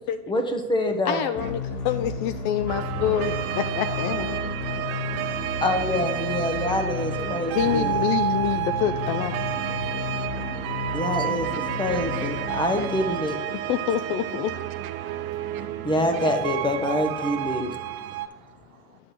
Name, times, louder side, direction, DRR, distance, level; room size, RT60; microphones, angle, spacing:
voice 1, 0.3-1.2 5.6-8.1 10.9-11.5 11.8-13.4 15.8-17.7, left 1 dB, 10° left, 1.0 m, -26 dB
voice 2, 1.1-4.6 7.2-9.4 13.7-14.5, left 9 dB, 35° left, 0.4 m, -27 dB
sound 1, 1.4-13.3, left 4 dB, 85° left, 1.7 m, -33 dB
sound 2, 2.7-18.3, right 12 dB, 35° right, 0.6 m, -30 dB
voice 3, 12.1-12.9 14.8-15.4 16.2-16.3 17.7-19.0, right 11 dB, 70° right, 1.1 m, -48 dB
10.5 x 7.6 x 3.1 m
hypercardioid pair, 95°, 44 cm